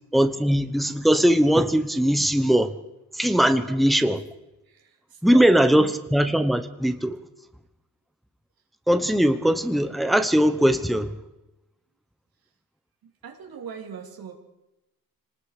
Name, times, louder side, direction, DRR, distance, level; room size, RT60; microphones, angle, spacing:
voice 1, 0.1-2.7 3.1-4.2 5.2-7.2 8.9-11.1, equal, ahead, 1.1 m, -20 dB
voice 2, 3.7-4.2 4.7-5.9 9.5-9.7 13.0-14.4, right 7 dB, 80° right, 3.2 m, -42 dB
26.0 x 19.5 x 5.1 m
cardioid pair, 110°, 35 cm